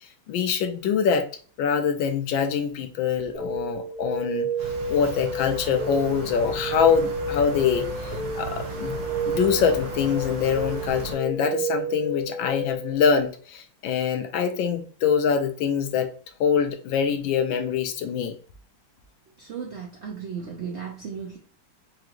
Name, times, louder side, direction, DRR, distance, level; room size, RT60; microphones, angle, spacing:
voice 1, 0.3-1.2 1.6-4.5 4.9-9.0 9.3-16.1 16.4-18.3, left 7 dB, 75° left, 6 dB, 1.4 m, -24 dB
sound 1, 3.3-12.9, right 2 dB, 20° right, 1.0 m, -31 dB
sound 2, 4.6-11.2, right 2 dB, 85° right, 2.2 m, -36 dB
voice 2, 19.4-21.4, right 6 dB, 70° right, -1 dB, 0.6 m, -35 dB
4.8 x 3.0 x 2.5 m, 0.42 s
omnidirectional pair, 2.3 m